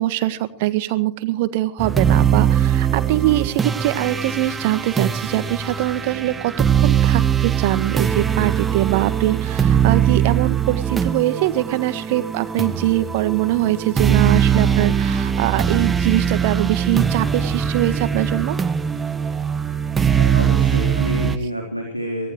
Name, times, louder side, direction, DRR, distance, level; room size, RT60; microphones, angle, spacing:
voice 1, 0.0-6.5 6.8-18.6, right 16 dB, 50° right, 13 dB, 1.7 m, -22 dB
sound 1, 1.8-21.4, right 8 dB, 15° right, 1.4 m, -21 dB
voice 2, 20.1-22.3, equal, 90° left, 1 dB, 4.0 m, -28 dB
24.0 x 18.5 x 3.2 m, 0.39 s
figure-of-eight pair, 90°, 0 cm